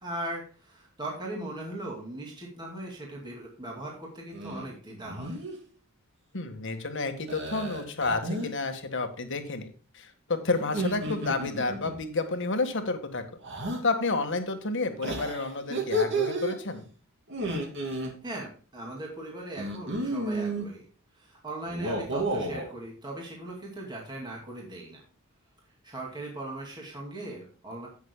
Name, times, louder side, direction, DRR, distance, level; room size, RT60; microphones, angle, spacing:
voice 1, 0.0-5.4 10.9-11.1 18.2-20.9 21.1-25.0 25.8-27.9, right 1 dB, 20° right, -2 dB, 2.4 m, -39 dB
sound 1, 4.3-4.7 5.0-5.6 7.3-8.5 10.6-12.0 13.4-13.8 15.0-16.6 17.3-18.1 19.6-20.7 21.7-22.7, right 1 dB, 55° right, 2.6 m, -31 dB
voice 2, 6.3-9.7 9.9-13.2 13.8-16.9, left 3 dB, 60° left, 7 dB, 1.6 m, -30 dB
17.0 x 6.5 x 2.2 m, 0.41 s
head